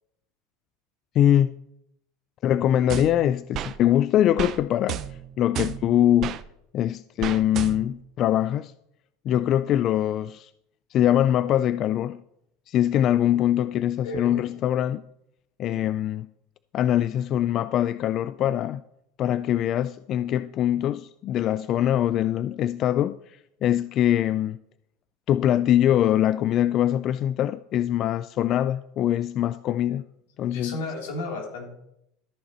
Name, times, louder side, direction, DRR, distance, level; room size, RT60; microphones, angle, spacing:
voice 1, 1.2-1.5 2.4-5.0 5.4-6.4 6.7-8.7 9.3-10.5 10.9-12.2 12.7-15.0 15.6-16.3 16.7-18.8 19.2-24.6 25.3-30.0 30.4-30.8, left 11 dB, 45° left, 0.3 m, -23 dB
sound 1, 2.9-3.8 4.4-4.6 4.9-6.4 7.2-8.0, right 12 dB, 45° right, 0.5 m, -33 dB
voice 2, 30.5-31.7, left 2 dB, 90° left, 3.3 m, -33 dB
13.5 x 6.6 x 4.3 m
supercardioid pair, 115°, 0 cm